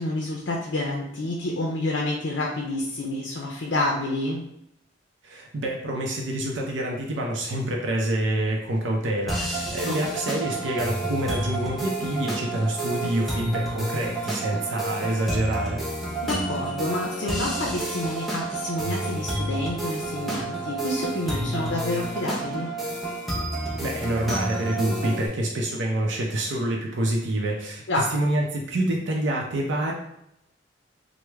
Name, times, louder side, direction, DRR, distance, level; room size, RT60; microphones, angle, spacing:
voice 1, 0.0-4.4 9.8-9.9 16.2-22.7 27.9-28.1, left 2 dB, 70° left, -1 dB, 0.5 m, -28 dB
voice 2, 5.2-15.8 23.8-27.8 28.1-29.9, right 1 dB, 80° right, 0 dB, 0.5 m, -27 dB
sound 1, 9.3-25.3, right 2 dB, ahead, 0.5 m, -30 dB
3.1 x 2.0 x 3.4 m, 0.80 s
head